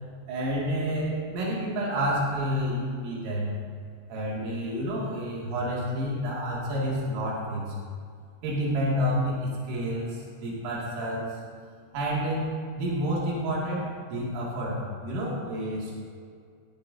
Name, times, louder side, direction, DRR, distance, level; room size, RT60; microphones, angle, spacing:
voice 1, 0.3-3.5 4.1-7.8 8.4-11.4 11.9-12.5 12.8-15.9, equal, 90° right, -6 dB, 5.2 m, -29 dB
18.0 x 13.0 x 2.9 m, 2.2 s
omnidirectional pair, 5.7 m